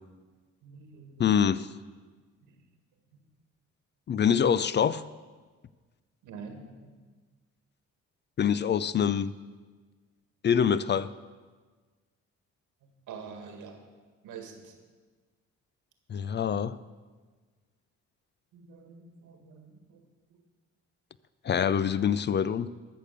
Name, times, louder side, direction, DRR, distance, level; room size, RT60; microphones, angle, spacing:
voice 1, 0.6-1.3 2.5-2.6 6.2-6.9 12.8-13.8 14.2-14.7 18.5-20.0, right 5 dB, 85° right, 1.8 m, -46 dB
voice 2, 1.2-1.7 4.1-5.0 8.4-9.3 10.4-11.1 16.1-16.8 21.4-22.7, left 8 dB, 35° left, 0.4 m, -25 dB
13.5 x 6.7 x 6.7 m
cardioid pair, 90°, 30 cm